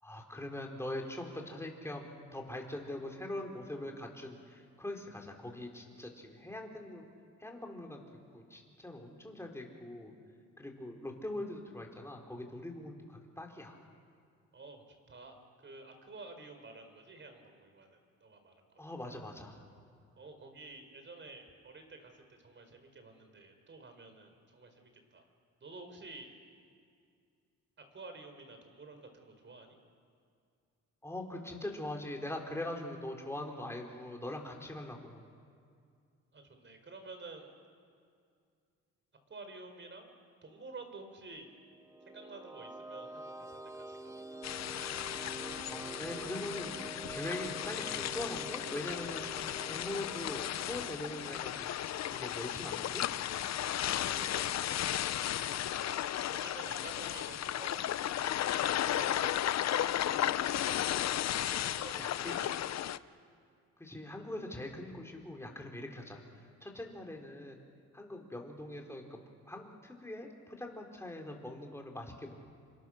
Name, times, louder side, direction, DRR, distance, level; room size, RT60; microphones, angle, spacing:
voice 1, 0.0-7.1 7.4-8.0 8.3-10.1 10.6-13.8 18.8-19.6 31.0-35.3 45.7-49.3 49.7-53.0 62.0-62.3 63.8-66.2 66.6-67.6 67.9-69.2 69.5-72.5, left 1 dB, 10° left, 1 dB, 4.5 m, -42 dB
voice 2, 14.5-15.4 15.6-18.7 20.2-25.3 25.6-26.3 27.8-29.8 36.3-37.5 39.3-40.1 40.4-41.5 42.1-44.4 53.8-54.8 55.6-56.1 56.3-57.9 58.7-59.4 60.0-60.6 61.4-62.8, right 3 dB, 40° right, 6 dB, 5.1 m, -51 dB
sound 1, 41.7-52.5, right 2 dB, 10° right, 1.2 m, -47 dB
sound 2, 44.4-63.0, left 11 dB, 60° left, 0.7 m, -34 dB
29.0 x 25.5 x 6.7 m, 2.3 s
cardioid pair, 90°, 30 cm